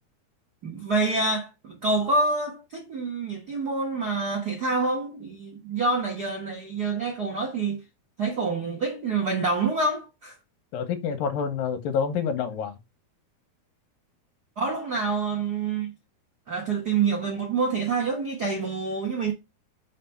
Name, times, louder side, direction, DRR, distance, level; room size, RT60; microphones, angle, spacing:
voice 1, 0.6-7.8 8.2-10.3 14.6-15.9 16.5-19.3, right 3 dB, 70° right, 0.9 m, -27 dB
voice 2, 10.7-12.7, left 6 dB, 75° left, 2.7 m, -27 dB
6.1 x 3.4 x 5.7 m
omnidirectional pair, 4.3 m